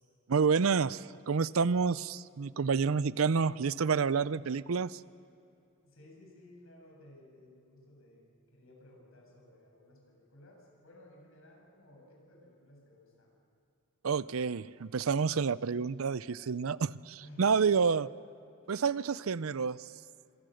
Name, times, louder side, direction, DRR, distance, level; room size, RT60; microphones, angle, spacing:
voice 1, 0.3-5.0 14.0-18.1 18.7-19.9, right 5 dB, 90° right, 18 dB, 0.6 m, -29 dB
voice 2, 5.8-13.3 17.2-17.6, left 1 dB, 75° left, 0 dB, 7.7 m, -57 dB
26.5 x 24.0 x 6.5 m, 2.7 s
head